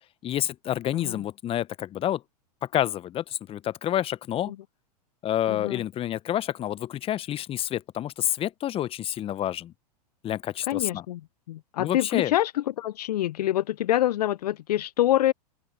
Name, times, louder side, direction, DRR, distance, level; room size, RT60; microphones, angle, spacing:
voice 1, 0.2-2.2 2.6-4.5 5.2-9.7 10.2-11.1 11.8-12.3, left 12 dB, 25° left, 0.9 m, -28 dB
voice 2, 5.5-5.8 10.7-11.2 11.5-15.3, left 13 dB, 70° left, 0.5 m, -26 dB
hypercardioid pair, 100°, 21 cm